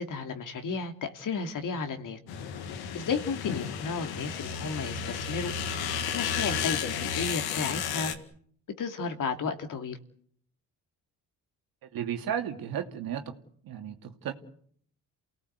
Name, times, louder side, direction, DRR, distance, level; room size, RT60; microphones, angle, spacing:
voice 1, 0.0-2.2 2.9-5.5 6.1-8.1 8.8-10.0, left 5 dB, 60° left, 6 dB, 2.9 m, -33 dB
sound 1, 2.3-8.1, left 7 dB, 85° left, 2.1 m, -33 dB
voice 2, 11.9-13.3 13.6-14.3, right 9 dB, 70° right, 5 dB, 2.7 m, -34 dB
28.5 x 18.0 x 8.2 m, 0.62 s
supercardioid pair, 65°, 37 cm